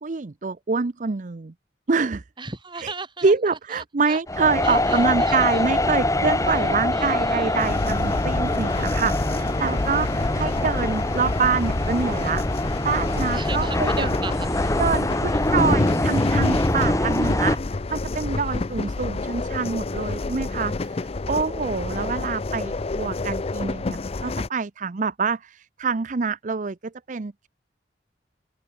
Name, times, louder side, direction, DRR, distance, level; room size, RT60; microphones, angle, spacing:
voice 1, 0.0-1.5 1.9-2.2 2.8-2.9 3.2-12.4 12.8-14.1 14.8-26.8 27.1-27.5, right 5 dB, 45° right, 0.6 m, -26 dB
voice 2, 2.4-3.3 3.7-4.2 4.6-5.7 6.4-7.7 13.3-14.5 15.3-15.4 16.2-16.3 16.5-16.7, right 4 dB, 25° right, 3.8 m, -37 dB
sound 1, 4.3-17.6, left 1 dB, 20° left, 2.1 m, -24 dB
train lausanne geneva changing wagon binaural, 7.6-24.5, left 3 dB, 35° left, 0.5 m, -29 dB
open air
head